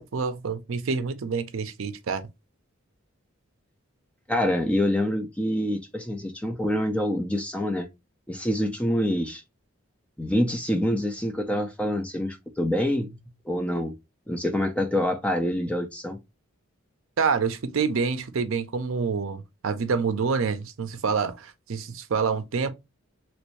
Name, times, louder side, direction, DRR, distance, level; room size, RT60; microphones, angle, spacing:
voice 1, 0.0-2.2 17.2-22.7, right 5 dB, 65° right, 0.5 m, -27 dB
voice 2, 4.3-7.9 8.3-9.4 10.2-13.1 13.5-13.9 14.3-16.2, left 1 dB, 5° left, 0.4 m, -26 dB
3.1 x 2.6 x 3.0 m
head